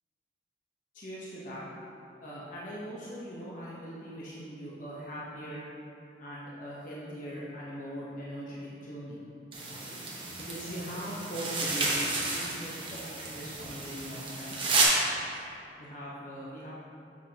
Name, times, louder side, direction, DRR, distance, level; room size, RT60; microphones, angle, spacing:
voice 1, 0.9-1.7 2.2-5.7 6.2-9.2 9.9-10.0 10.4-14.6 15.0-15.4 15.8-16.7, equal, 45° left, -7 dB, 0.9 m, -41 dB
sound 1, 9.5-14.8, right 3 dB, 30° right, 1.0 m, -32 dB
7.4 x 6.0 x 2.8 m, 2.7 s
head